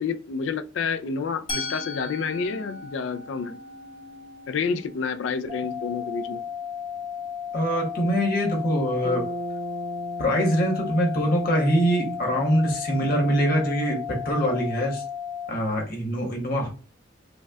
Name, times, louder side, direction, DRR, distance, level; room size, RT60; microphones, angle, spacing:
voice 1, 0.0-3.6 4.5-6.4, left 5 dB, 80° left, 0.3 m, -29 dB
Musical instrument, 1.5-7.4, left 2 dB, 25° left, 0.7 m, -39 dB
sound 1, 5.5-15.5, left 8 dB, 25° right, 0.6 m, -34 dB
voice 2, 7.5-9.3 10.2-15.0 15.5-16.7, equal, 50° left, 1.1 m, -24 dB
Bass guitar, 9.0-13.1, right 4 dB, 75° right, 0.5 m, -39 dB
5.1 x 2.2 x 2.3 m
head